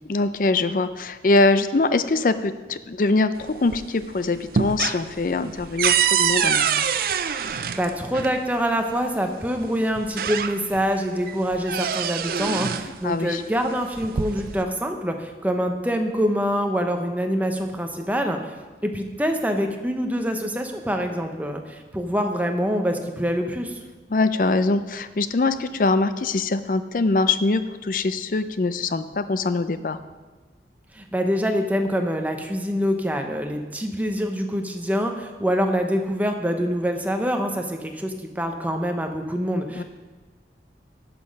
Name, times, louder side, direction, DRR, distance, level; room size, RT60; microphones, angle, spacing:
voice 1, 0.0-6.9 13.0-13.4 24.1-30.0 39.8-39.9, left 3 dB, 50° left, 12 dB, 0.4 m, -23 dB
sound 1, 3.4-4.0 4.3-8.4 9.4-9.5 10.0-10.9 11.3-12.9 13.8-14.6, right 8 dB, 55° right, 0.4 m, -25 dB
voice 2, 7.5-18.5 18.8-23.8 30.9-39.8, equal, 10° right, 4 dB, 0.7 m, -25 dB
11.5 x 6.0 x 5.2 m, 1.3 s
head